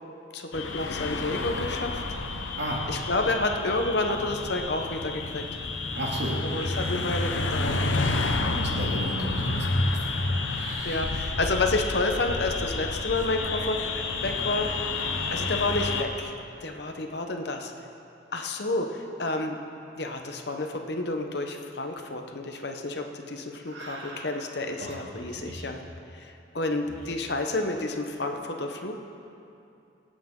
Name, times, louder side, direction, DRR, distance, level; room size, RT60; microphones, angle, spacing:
voice 1, 0.3-2.0 2.9-5.4 6.5-7.8 10.8-14.7 15.3-17.7 18.3-19.6 20.0-25.8 26.1-29.0, left 2 dB, 60° left, 4 dB, 1.0 m, -30 dB
sound 1, 0.5-16.0, left 3 dB, 85° left, 0.9 m, -30 dB
voice 2, 5.9-7.0 8.2-11.2 23.6-24.5 24.8-25.6 26.9-27.0, equal, 70° right, -3 dB, 2.5 m, -35 dB
24.5 x 8.5 x 3.8 m, 2.7 s
head